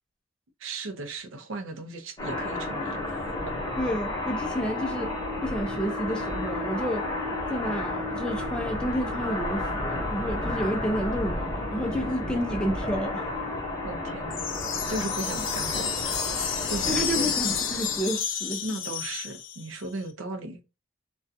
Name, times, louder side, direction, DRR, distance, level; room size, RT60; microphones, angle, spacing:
voice 1, 0.6-3.2 13.8-14.4 14.9-17.6 18.6-20.6, right 2 dB, 80° right, 0.6 m, -37 dB
sound 1, 2.2-18.2, left 2 dB, 20° left, 0.9 m, -32 dB
voice 2, 3.8-5.1 5.4-7.1 7.5-13.3 16.8-18.6, equal, 5° left, 0.4 m, -30 dB
sound 2, 14.3-19.8, left 7 dB, 70° left, 0.5 m, -31 dB
2.4 x 2.2 x 2.6 m
head